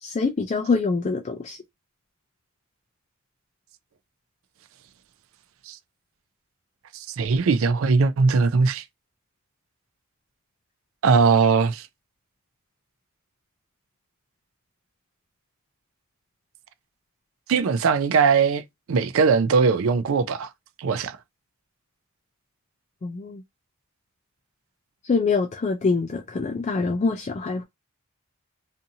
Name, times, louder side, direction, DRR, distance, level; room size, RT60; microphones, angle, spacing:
voice 1, 0.0-1.6 23.0-23.4 25.0-27.6, left 4 dB, 30° left, 0.3 m, -25 dB
voice 2, 6.9-8.8 11.0-11.9 17.5-18.6 18.9-20.5 20.8-21.2, right 5 dB, 65° right, 0.4 m, -20 dB
2.6 x 2.5 x 2.7 m
head